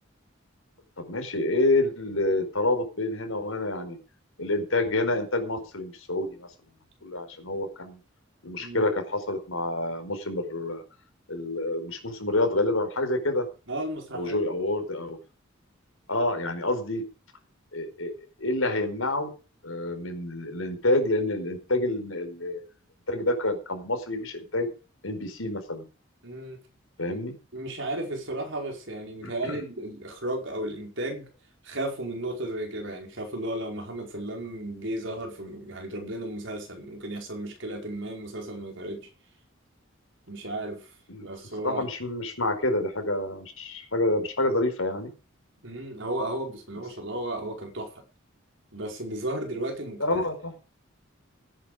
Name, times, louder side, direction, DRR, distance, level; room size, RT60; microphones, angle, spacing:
voice 1, 1.0-4.0 4.4-6.5 7.0-8.0 8.4-10.8 11.3-13.4 14.1-15.2 16.1-17.0 17.7-18.1 18.4-19.3 19.6-22.6 23.1-24.7 25.0-25.8 27.0-27.3 29.2-29.6 41.1-41.3 41.6-45.1 50.0-50.5, left 2 dB, 80° left, 5 dB, 4.8 m, -28 dB
voice 2, 8.6-8.9 13.7-14.5 26.2-26.6 27.5-31.3 31.6-39.1 40.3-40.9 41.2-41.9 45.6-48.0 48.7-50.3, right 1 dB, 65° right, 2 dB, 5.3 m, -34 dB
16.5 x 10.0 x 5.2 m, 0.35 s
head